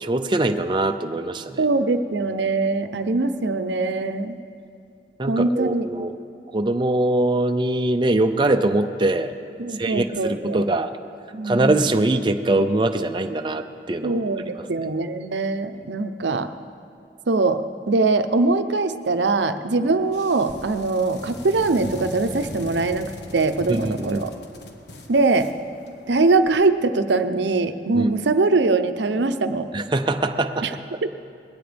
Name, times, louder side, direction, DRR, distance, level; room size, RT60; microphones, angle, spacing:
voice 1, 0.0-1.6 5.2-6.1 6.5-9.3 9.7-10.9 11.4-14.2 14.6-14.7 23.7-24.2 27.9-28.1 29.7-31.1, right 2 dB, 25° right, 7 dB, 0.5 m, -22 dB
voice 2, 1.6-4.4 5.3-5.9 9.6-10.6 11.3-11.7 14.0-16.5 17.3-24.3 25.1-25.5 26.1-29.7 30.6-30.7 31.0-31.1, right 3 dB, 85° right, 9 dB, 0.7 m, -22 dB
sound 1, 20.0-26.5, left 1 dB, 70° left, 1.4 m, -40 dB
21.0 x 17.5 x 3.4 m, 2.4 s
head